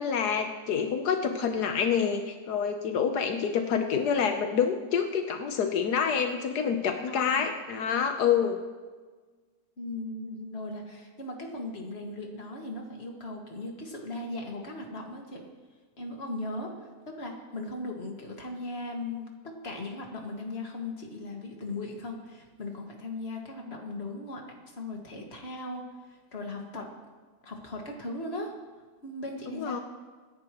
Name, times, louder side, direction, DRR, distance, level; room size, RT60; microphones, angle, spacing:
voice 1, 0.0-8.6 29.5-29.8, left 7 dB, 85° left, 5 dB, 1.5 m, -27 dB
voice 2, 7.1-7.4 9.8-15.4 16.0-26.9 27.4-28.5 29.0-29.8, left 2 dB, 40° left, 1 dB, 2.1 m, -38 dB
26.0 x 10.5 x 3.1 m, 1.4 s
omnidirectional pair, 1.7 m